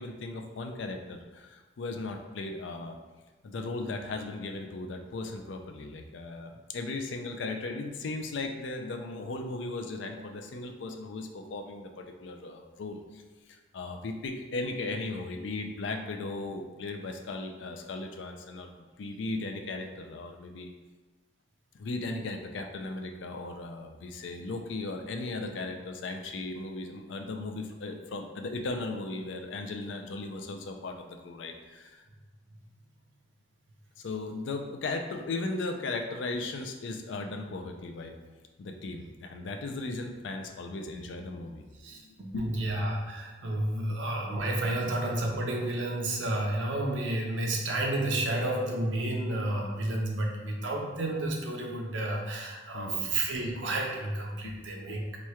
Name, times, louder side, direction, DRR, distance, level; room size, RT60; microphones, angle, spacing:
voice 1, 0.0-3.0 3.4-13.2 13.7-20.7 21.7-32.0 34.0-38.2 38.6-41.6 41.9-42.0 42.3-42.9 44.7-44.9 52.7-53.1 54.4-55.0, left 2 dB, 80° left, 4 dB, 0.4 m, -37 dB
voice 2, 41.8-55.2, right 1 dB, 85° right, 0 dB, 0.7 m, -31 dB
3.0 x 2.3 x 4.3 m, 1.3 s
head